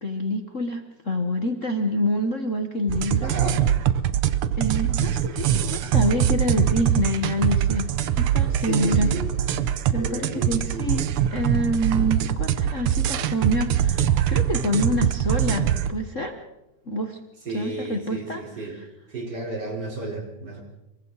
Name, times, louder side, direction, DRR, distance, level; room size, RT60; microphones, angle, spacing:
voice 1, 0.0-3.4 4.6-9.1 9.9-16.4 16.9-17.2 17.5-18.9, left 1 dB, 55° left, 5 dB, 0.8 m, -27 dB
sound 1, 2.9-15.9, right 10 dB, 80° right, 1.2 m, -23 dB
voice 2, 3.2-3.6 8.6-9.3 10.0-10.9 17.5-18.8 19.1-20.6, right 2 dB, 30° right, 0 dB, 4.7 m, -31 dB
27.0 x 23.5 x 4.1 m, 0.94 s
omnidirectional pair, 3.5 m